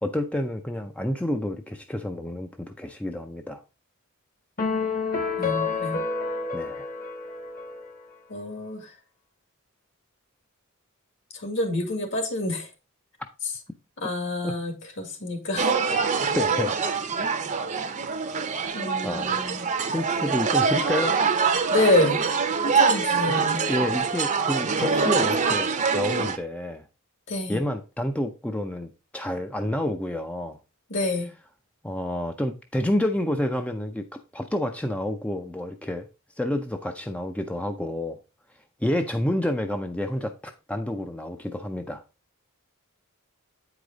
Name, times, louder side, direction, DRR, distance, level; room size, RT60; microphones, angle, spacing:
voice 1, 0.0-3.6 6.5-6.9 14.4-14.5 16.4-16.7 19.0-19.4 19.9-21.2 23.3-26.9 27.5-30.6 31.8-34.1 34.3-36.1 36.4-38.2 38.8-42.0, left 1 dB, 5° left, 0.5 m, -29 dB
sound 1, 4.6-8.1, left 4 dB, 40° left, 1.3 m, -29 dB
voice 2, 5.4-6.0 8.3-8.8 11.4-12.7 14.0-15.8 18.7-19.7 21.7-22.2 22.6-23.6 27.3-27.6 30.9-31.3, left 2 dB, 60° left, 2.1 m, -27 dB
sound 2, 15.6-26.4, right 5 dB, 35° right, 0.7 m, -24 dB
8.7 x 4.9 x 3.9 m
head